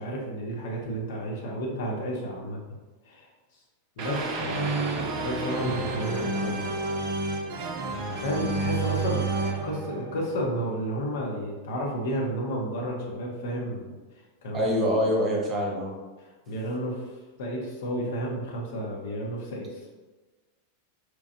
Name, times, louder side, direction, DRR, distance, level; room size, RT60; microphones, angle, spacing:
voice 1, 0.0-2.6 3.0-3.3 4.0-4.8 5.2-7.5 8.2-9.2 9.6-14.0 14.4-14.7 15.1-15.2 16.2-17.1 17.4-19.9, equal, 55° left, -2 dB, 0.8 m, -32 dB
sound 1, 4.0-11.0, right 3 dB, 40° right, 0.5 m, -30 dB
voice 2, 14.5-15.9, equal, 25° right, -1 dB, 0.8 m, -25 dB
4.5 x 2.4 x 2.6 m, 1.2 s
figure-of-eight pair, 90°, 0 cm